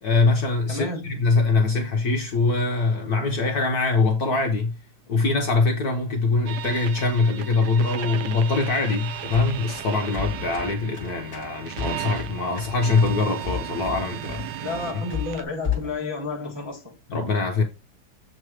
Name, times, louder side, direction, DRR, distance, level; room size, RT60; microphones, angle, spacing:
voice 1, 0.0-4.8 5.1-14.5 17.1-17.6, left 3 dB, 60° left, 1.1 m, -23 dB
voice 2, 0.7-1.2 14.6-17.0, left 3 dB, 15° right, 0.9 m, -31 dB
sound 1, 6.5-15.4, right 10 dB, 70° right, 1.0 m, -35 dB
sound 2, 9.2-16.0, left 8 dB, 25° left, 1.9 m, -34 dB
7.5 x 3.0 x 4.8 m
omnidirectional pair, 2.3 m